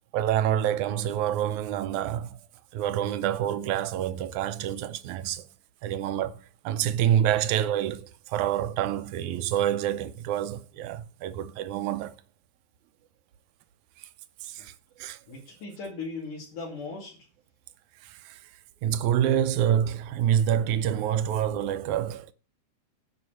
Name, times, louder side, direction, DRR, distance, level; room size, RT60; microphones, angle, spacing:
voice 1, 0.1-2.4 2.7-5.4 5.8-12.1 14.0-14.1 14.4-14.7 15.0-15.2 18.0-18.4 18.8-22.3, right 10 dB, 75° right, 2.2 m, -27 dB
voice 2, 15.3-17.3, left 3 dB, 85° left, 4.4 m, -38 dB
10.0 x 5.6 x 7.6 m
omnidirectional pair, 3.6 m